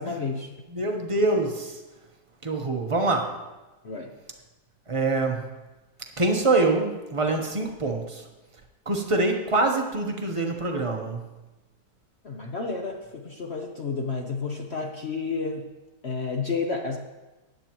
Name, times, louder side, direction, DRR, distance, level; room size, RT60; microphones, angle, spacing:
voice 1, 0.0-0.6 3.8-4.1 12.2-15.7 16.0-17.0, left 4 dB, 55° left, 2 dB, 0.7 m, -31 dB
voice 2, 0.7-1.8 2.4-3.4 4.9-5.4 6.2-8.3 8.9-11.2, right 2 dB, 30° right, 2 dB, 0.5 m, -25 dB
16.0 x 10.5 x 3.0 m, 1.1 s
omnidirectional pair, 2.1 m